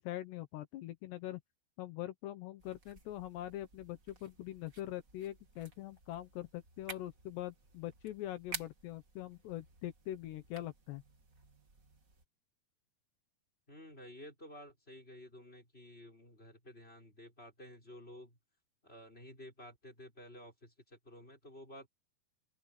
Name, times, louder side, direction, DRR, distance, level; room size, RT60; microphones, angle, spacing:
voice 1, 0.0-1.4 1.8-11.0, left 14 dB, 80° left, 3.3 m, -43 dB
sound 1, 2.6-12.2, right 4 dB, 35° right, 1.5 m, -53 dB
voice 2, 13.7-18.4 18.8-21.9, left 1 dB, 15° left, 6.5 m, -53 dB
open air
omnidirectional pair, 4.9 m